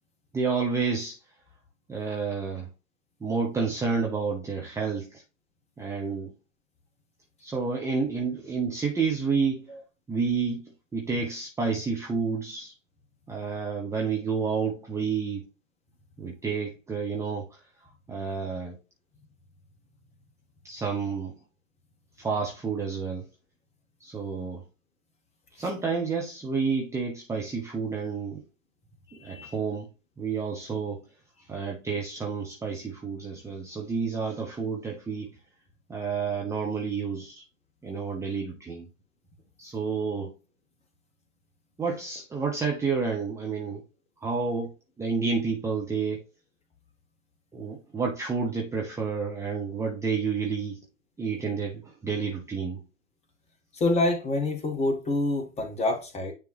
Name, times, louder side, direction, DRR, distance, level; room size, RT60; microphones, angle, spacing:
voice 1, 0.3-1.2 1.9-2.7 3.2-5.1 5.8-6.3 7.4-9.7 10.1-12.7 13.3-15.4 16.2-17.5 18.1-18.8 20.6-21.3 22.2-23.2 24.0-24.6 25.6-28.4 29.2-29.9 30.2-31.0 31.5-35.3 35.9-37.4 37.8-38.9 39.6-40.3 41.8-43.8 44.2-44.7 45.0-46.2 47.5-50.8 51.2-52.8, right 5 dB, 5° right, 0.9 m, -30 dB
voice 2, 29.1-29.5 53.7-56.3, left 2 dB, 15° left, 1.5 m, -27 dB
9.5 x 3.4 x 3.1 m
figure-of-eight pair, 110°, 39 cm